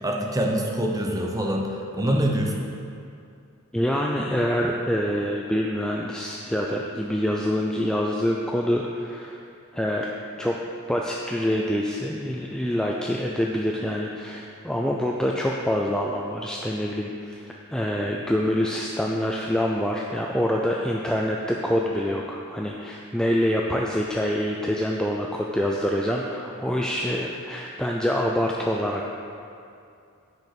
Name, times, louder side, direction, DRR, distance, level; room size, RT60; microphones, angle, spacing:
voice 1, 0.0-2.7, right 1 dB, 15° right, 0 dB, 0.8 m, -25 dB
voice 2, 3.7-9.4 9.7-10.1 10.4-10.5 10.9-29.1, equal, 5° left, -1 dB, 0.4 m, -26 dB
9.1 x 5.3 x 5.9 m, 2.5 s
head